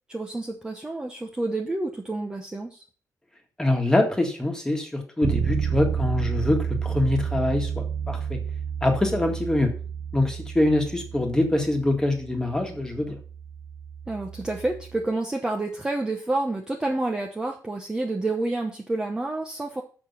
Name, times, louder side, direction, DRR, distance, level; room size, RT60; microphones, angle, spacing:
voice 1, 0.1-2.8 14.1-19.8, right 2 dB, 10° right, 1 dB, 0.9 m, -29 dB
voice 2, 3.6-8.4 8.8-9.7 10.1-13.2, left 1 dB, 10° left, 3 dB, 1.7 m, -24 dB
Bass guitar, 5.2-15.0, right 8 dB, 60° right, 0.6 m, -31 dB
6.6 x 6.2 x 7.1 m, 0.40 s
wide cardioid pair, 175°, 7 cm